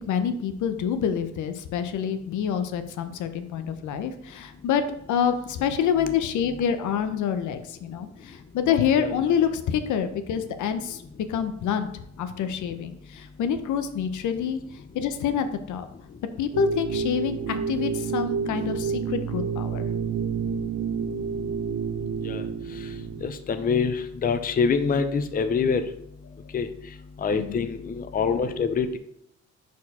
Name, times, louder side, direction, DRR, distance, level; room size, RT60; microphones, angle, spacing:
voice 1, 0.1-4.8 5.1-11.0 11.3-11.9 12.2-14.6 14.9-15.9 16.4-19.8 27.3-27.7, left 8 dB, 75° left, 9 dB, 0.7 m, -27 dB
sound 1, 16.5-23.3, right 6 dB, 90° right, 0.7 m, -29 dB
voice 2, 23.2-25.8 26.5-26.7 27.2-29.0, left 5 dB, 30° left, 9 dB, 0.5 m, -25 dB
4.7 x 4.2 x 5.4 m, 0.75 s
cardioid pair, 90°, 30 cm